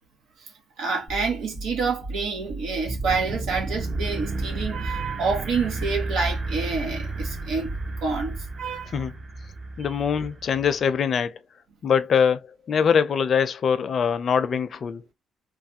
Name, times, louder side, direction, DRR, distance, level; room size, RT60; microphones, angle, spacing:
voice 1, 0.8-9.0, right 4 dB, 85° right, 1.0 m, -28 dB
sound 1, 1.1-8.6, right 2 dB, 70° right, 1.5 m, -37 dB
sound 2, 2.8-10.9, right 2 dB, 45° right, 0.8 m, -33 dB
voice 2, 9.8-11.4 11.8-12.4 12.7-15.0, left 7 dB, 55° left, 0.5 m, -23 dB
3.2 x 2.2 x 2.7 m
cardioid pair, 90°, 0 cm